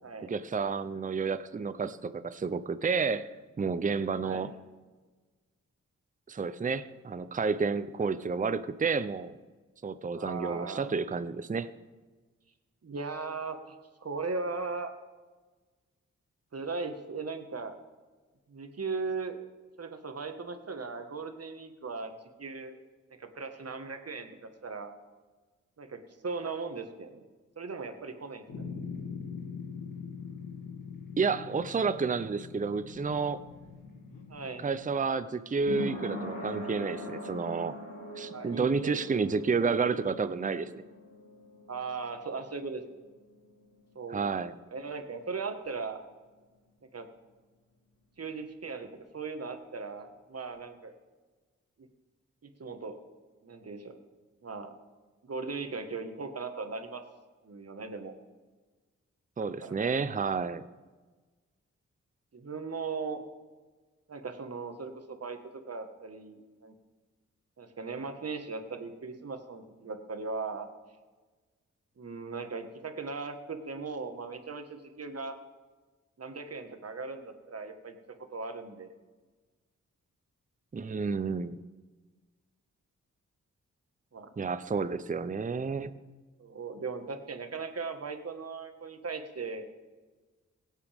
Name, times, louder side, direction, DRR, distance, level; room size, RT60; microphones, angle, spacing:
voice 1, 0.3-3.3 3.6-4.5 6.3-9.4 9.8-11.7 31.2-33.4 34.6-37.8 38.2-40.7 44.1-44.5 59.4-60.6 80.7-81.6 84.4-86.0, right 5 dB, 25° right, 13 dB, 0.6 m, -30 dB
voice 2, 10.1-10.9 12.8-13.7 14.0-14.9 16.5-17.7 18.5-19.4 19.8-22.1 22.4-22.8 23.2-24.9 25.8-27.2 27.6-28.6 34.3-34.6 38.3-39.0 41.7-42.8 43.9-44.4 44.7-46.0 46.9-47.1 48.2-48.9 49.1-50.9 52.4-53.0 53.4-54.0 54.4-54.7 55.2-57.0 57.4-58.1 59.6-59.7 62.3-63.2 64.1-65.4 65.7-66.7 67.6-70.7 72.0-75.3 76.2-77.9 78.3-78.9 84.1-84.3 86.4-89.7, right 4 dB, 50° right, 7 dB, 1.6 m, -38 dB
sound 1, 28.5-34.9, left 6 dB, 85° left, 2.6 m, -43 dB
sound 2, 32.9-44.1 44.4-44.5, left 1 dB, 60° left, 3.5 m, -43 dB
17.0 x 8.4 x 3.6 m, 1.3 s
cardioid pair, 45°, 31 cm